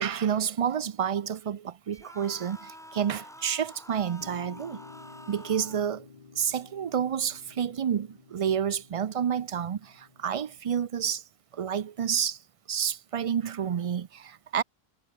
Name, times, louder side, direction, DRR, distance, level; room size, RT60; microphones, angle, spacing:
voice 1, 0.0-4.8 5.3-6.1 6.4-11.2 11.5-12.4 12.7-14.6, right 8 dB, 50° right, 0.4 m, -29 dB
sound 1, 1.9-5.9, equal, 5° left, 0.7 m, -48 dB
sound 2, 4.2-10.6, left 5 dB, 40° left, 1.2 m, -52 dB
omnidirectional pair, 1.0 m